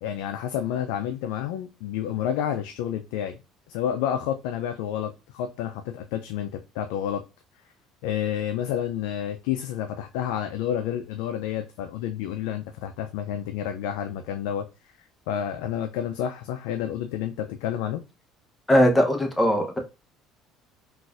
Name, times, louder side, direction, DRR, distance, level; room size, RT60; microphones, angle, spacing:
voice 1, 0.0-3.4 3.7-7.2 8.0-14.7 15.3-18.0, left 10 dB, 85° left, 7 dB, 0.3 m, -29 dB
voice 2, 18.7-19.8, equal, 10° left, 3 dB, 0.8 m, -20 dB
3.9 x 2.4 x 2.4 m, 0.28 s
cardioid pair, 110°, 0 cm